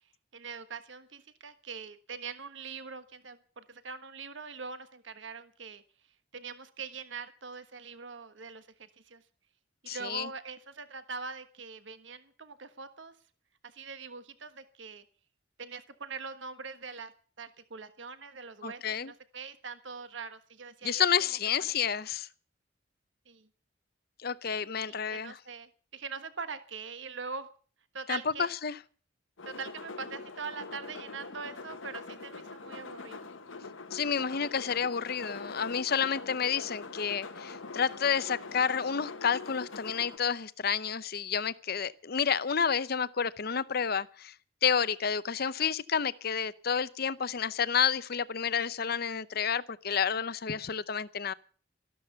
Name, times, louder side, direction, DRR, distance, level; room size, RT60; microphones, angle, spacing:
voice 1, 0.3-5.8 6.3-9.2 9.8-13.1 13.6-15.0 15.6-17.1 17.4-21.0 23.3-23.5 24.9-27.5 27.9-28.5 29.4-33.2, right 5 dB, 70° right, 1.4 m, -42 dB
voice 2, 9.9-10.3 18.6-19.1 20.8-22.3 24.2-25.4 28.1-28.8 33.9-44.3 44.6-51.3, left 7 dB, 55° left, 0.7 m, -30 dB
sound 1, 29.4-40.2, left 3 dB, 90° left, 1.4 m, -43 dB
13.5 x 12.5 x 6.8 m
head